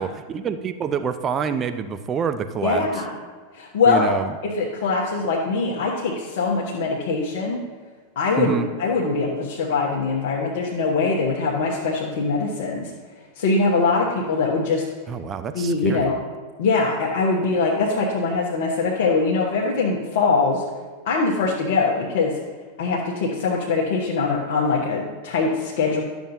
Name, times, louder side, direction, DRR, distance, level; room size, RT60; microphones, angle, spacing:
voice 1, 0.0-2.9 3.9-4.4 8.4-8.7 15.1-16.1, right 7 dB, 25° right, 9 dB, 0.5 m, -27 dB
voice 2, 2.6-3.2 3.5-4.1 4.4-7.6 8.1-12.9 13.4-14.8 15.5-16.2 16.6-20.6 21.0-22.3 22.8-26.0, left 4 dB, 55° left, -4 dB, 1.1 m, -22 dB
11.5 x 7.1 x 2.7 m, 1.5 s
figure-of-eight pair, 90°, 0 cm